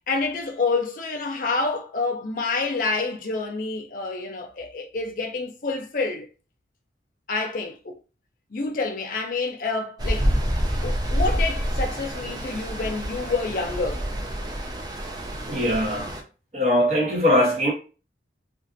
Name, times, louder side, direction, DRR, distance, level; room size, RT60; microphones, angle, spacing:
voice 1, 0.1-6.3 7.3-8.0 8.5-10.3 10.8-14.1, left 3 dB, 50° left, 0.5 m, -28 dB
Stream, 10.0-16.2, equal, 25° right, 0.4 m, -27 dB
voice 2, 15.5-16.1 16.5-17.7, left 1 dB, 40° right, 1.0 m, -21 dB
2.5 x 2.4 x 2.5 m
head